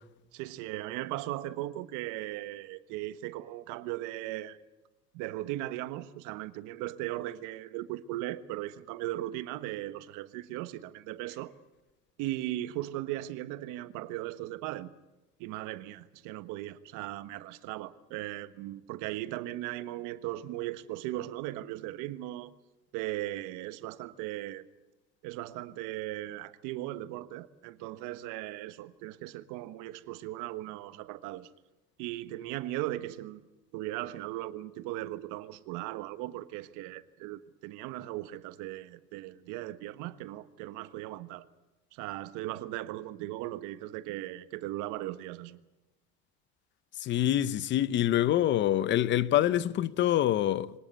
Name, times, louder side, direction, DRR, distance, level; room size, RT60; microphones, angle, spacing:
voice 1, 0.3-4.6 5.1-11.5 12.2-14.9 15.4-22.5 22.9-24.6 25.2-31.5 32.0-33.4 33.7-41.5 41.9-45.6, right 15 dB, 70° right, 1.4 m, -38 dB
voice 2, 47.0-50.7, left 12 dB, 35° left, 0.8 m, -26 dB
24.5 x 19.0 x 8.3 m
cardioid pair, 170°, 31 cm